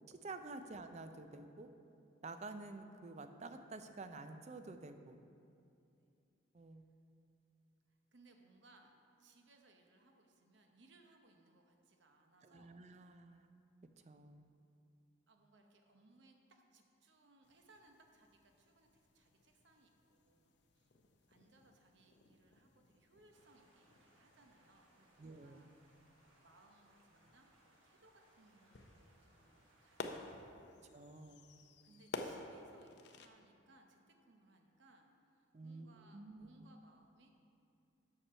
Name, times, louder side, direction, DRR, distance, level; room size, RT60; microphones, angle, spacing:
voice 1, 0.1-1.7 2.2-5.2 6.5-6.9 12.4-13.5 14.0-14.5 25.2-25.7 30.9-31.5 35.5-36.5, right 3 dB, 35° right, 8 dB, 0.4 m, -50 dB
voice 2, 7.9-12.8 15.3-20.9 21.3-26.1 26.4-30.8 31.8-37.3, right 2 dB, 65° right, 3 dB, 0.8 m, -67 dB
sound 1, 17.4-33.3, left 3 dB, 55° left, 0.5 m, -54 dB
sound 2, 23.3-30.2, right 1 dB, 90° right, 1.3 m, -71 dB
7.1 x 6.8 x 5.5 m, 2.6 s
head